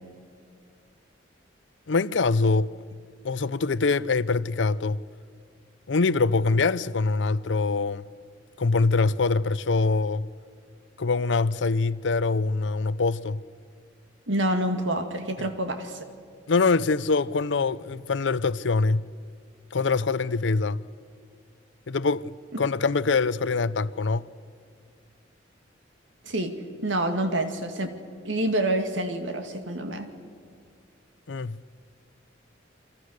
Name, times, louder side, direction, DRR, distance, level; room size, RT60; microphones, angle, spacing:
voice 1, 1.9-2.7 3.2-5.0 5.9-8.0 8.6-10.3 11.0-13.4 16.5-19.1 19.7-20.8 21.9-24.3 31.3-31.6, left 4 dB, 75° left, 0.6 m, -24 dB
voice 2, 14.3-16.0 26.2-26.5 26.8-27.9 28.2-30.1, right 1 dB, 90° right, 2.4 m, -27 dB
29.5 x 24.5 x 6.6 m
head